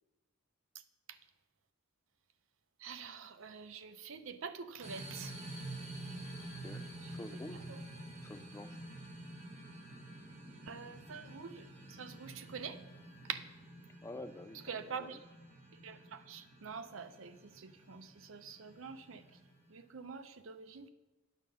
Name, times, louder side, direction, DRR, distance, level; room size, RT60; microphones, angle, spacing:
voice 1, 2.8-5.3 7.7-7.8 10.7-12.8 13.3-13.4 14.7-15.2 15.8-19.2 19.7-20.9, right 6 dB, 75° right, 11 dB, 0.6 m, -45 dB
sound 1, 4.8-19.9, right 1 dB, 35° right, 1.5 m, -49 dB
voice 2, 6.4-6.8 7.1-7.7 8.2-8.8 14.0-15.2, left 2 dB, 15° left, 10 dB, 0.3 m, -48 dB
9.4 x 5.4 x 6.6 m, 1.2 s
head